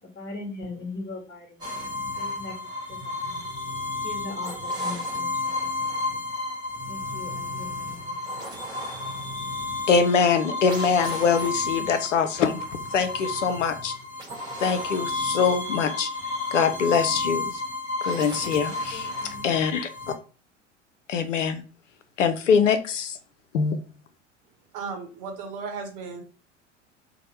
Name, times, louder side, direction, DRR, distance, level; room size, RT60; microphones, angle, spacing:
voice 1, 0.0-1.9 2.2-2.5 2.9-3.4 4.0-6.2 6.9-8.2 18.7-19.5, left 3 dB, 30° left, 1.2 m, -40 dB
sound 1, 1.6-20.1, left 2 dB, 10° right, 1.2 m, -32 dB
voice 2, 9.9-12.6 12.9-13.9 14.6-16.1 16.5-17.6 18.0-20.1 21.1-21.6 22.2-23.2 23.5-23.8, left 6 dB, 80° left, 0.5 m, -23 dB
voice 3, 24.7-26.2, right 5 dB, 45° right, 0.9 m, -35 dB
2.7 x 2.1 x 3.1 m
figure-of-eight pair, 75°, 37 cm